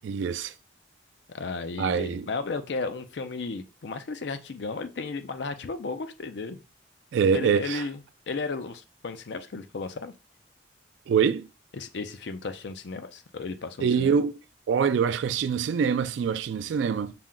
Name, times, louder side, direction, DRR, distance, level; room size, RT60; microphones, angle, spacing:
voice 1, 0.0-0.5 1.8-2.3 7.1-7.8 11.1-11.5 13.8-14.4 14.7-17.1, right 6 dB, 75° right, 0.3 m, -24 dB
voice 2, 1.3-6.6 7.3-8.0 8.3-10.1 11.7-14.2, left 4 dB, 65° left, 0.5 m, -34 dB
5.8 x 2.1 x 3.7 m
head